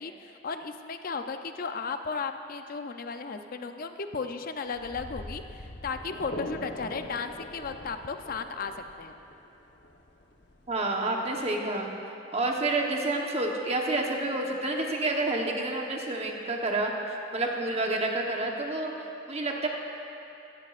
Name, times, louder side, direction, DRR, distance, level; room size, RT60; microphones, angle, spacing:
voice 1, 0.0-8.7 9.0-9.1, left 4 dB, 50° left, 7 dB, 0.5 m, -35 dB
sound 1, 4.7-11.5, left 1 dB, 65° left, 1.0 m, -42 dB
voice 2, 10.7-11.9 12.3-16.9 17.3-19.7, right 2 dB, 35° right, 0 dB, 1.1 m, -29 dB
16.0 x 13.5 x 2.5 m, 2.9 s
head